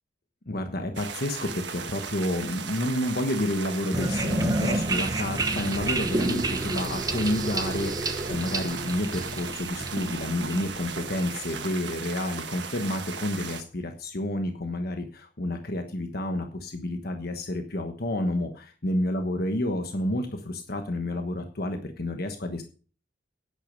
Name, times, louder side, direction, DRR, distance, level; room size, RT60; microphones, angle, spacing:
voice 1, 0.5-22.6, left 1 dB, 55° left, 6 dB, 1.3 m, -30 dB
sound 1, 0.9-13.6, right 6 dB, 70° right, 1.4 m, -37 dB
sound 2, 3.9-11.4, right 2 dB, 20° right, 1.0 m, -30 dB
10.5 x 10.5 x 5.3 m, 0.39 s
head